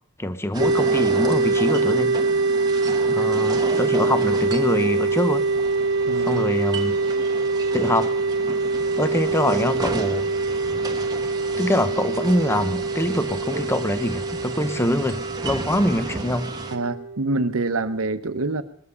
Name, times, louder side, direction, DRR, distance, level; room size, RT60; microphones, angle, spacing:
voice 1, 0.2-2.2 3.1-5.5 6.2-7.0 7.7-8.1 9.0-10.3 11.6-16.6, left 1 dB, 10° left, 11 dB, 0.7 m, -24 dB
sound 1, 0.5-16.8, right 2 dB, 20° right, 1.0 m, -34 dB
sound 2, 0.6-18.0, right 3 dB, 55° right, 0.6 m, -24 dB
voice 2, 6.1-6.4 16.7-18.6, right 3 dB, 80° right, 11 dB, 0.9 m, -26 dB
21.0 x 7.4 x 6.8 m, 0.67 s
head